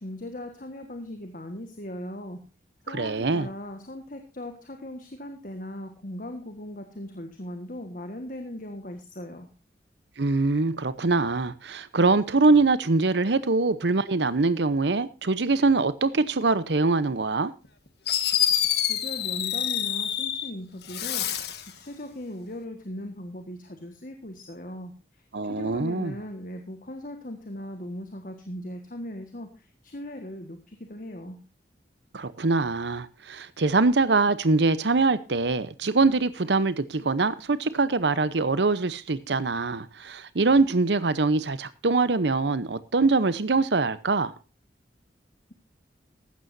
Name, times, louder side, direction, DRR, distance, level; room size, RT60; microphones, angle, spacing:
voice 1, 0.0-2.4 2.8-9.5 18.8-21.3 21.6-25.2 25.5-31.4, left 1 dB, 50° left, 1.6 m, -39 dB
voice 2, 2.9-3.5 10.2-17.5 25.3-26.1 32.1-44.3, right 3 dB, 75° right, 0.8 m, -23 dB
Fireworks, 17.6-17.7 18.1-20.5 20.8-21.7, left 10 dB, 65° left, 1.6 m, -26 dB
15.5 x 12.5 x 2.7 m
head